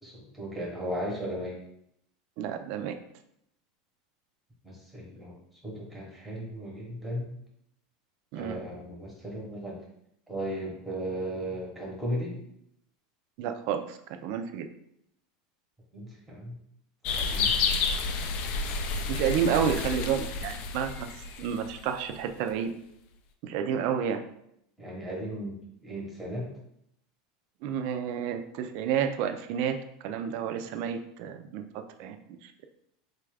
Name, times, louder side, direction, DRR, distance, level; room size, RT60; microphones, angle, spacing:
voice 1, 0.0-1.6 4.6-5.4 5.6-7.3 8.3-9.8 10.3-12.4 15.9-16.5 17.1-17.6 24.8-26.5, equal, ahead, -4 dB, 0.9 m, -36 dB
voice 2, 2.4-2.9 8.3-8.6 13.4-14.7 19.1-21.1 21.4-22.7 23.4-24.2 27.6-29.8 30.0-32.5, right 8 dB, 50° right, 8 dB, 0.3 m, -30 dB
sound 1, 17.0-22.0, left 4 dB, 40° left, 0.3 m, -30 dB
4.1 x 2.3 x 3.3 m, 0.75 s
supercardioid pair, 160°, 3 cm